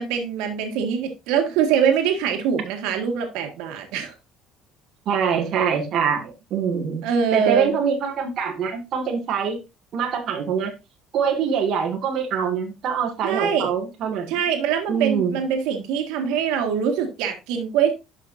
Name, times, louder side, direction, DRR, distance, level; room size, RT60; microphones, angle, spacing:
voice 1, 0.0-4.1 7.0-7.7 13.2-13.7 14.3-17.9, right 7 dB, 85° right, 1.7 m, -23 dB
voice 2, 5.1-7.1 7.3-9.6 9.9-10.7 11.1-14.3 14.9-15.4, right 7 dB, 45° right, 2.0 m, -24 dB
12.0 x 5.8 x 2.7 m
cardioid pair, 170°, 0 cm